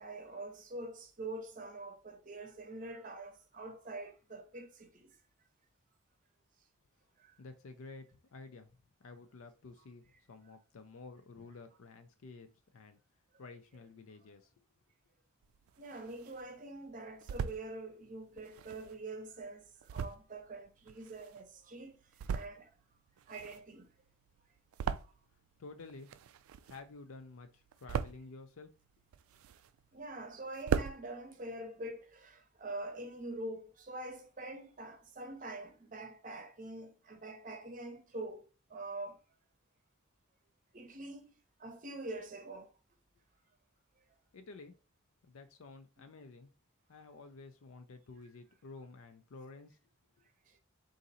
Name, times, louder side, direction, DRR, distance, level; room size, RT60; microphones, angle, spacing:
voice 1, 0.0-5.2 7.2-7.3 15.8-22.0 22.3-22.7 23.3-23.9 29.9-39.2 40.7-41.3 41.6-42.7, right 2 dB, 35° right, 0.7 m, -45 dB
voice 2, 7.4-8.7 9.0-13.0 13.4-14.5 25.6-26.1 26.7-28.7 44.3-44.7 45.3-46.5 46.9-49.8, left 3 dB, 70° left, 0.5 m, -51 dB
sound 1, 15.4-16.4 16.9-17.6 18.3-21.6 22.0-22.8 23.1-25.5 25.8-27.0 27.4-28.4 28.9-29.9 30.3-30.4 30.5-31.0, right 7 dB, 75° right, 0.3 m, -38 dB
3.9 x 2.6 x 4.0 m
head